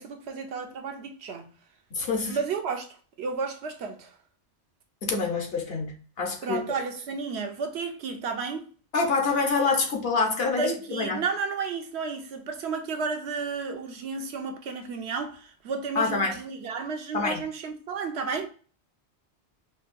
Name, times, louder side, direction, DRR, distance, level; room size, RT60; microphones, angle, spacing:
voice 1, 0.0-1.5 2.3-4.2 6.4-8.7 10.6-18.5, right 5 dB, 75° right, 1.0 m, -32 dB
voice 2, 1.9-2.4 5.0-6.6 8.9-11.2 16.0-16.4 17.1-17.4, left 4 dB, 60° left, 1.1 m, -26 dB
5.2 x 2.2 x 2.5 m
omnidirectional pair, 1.1 m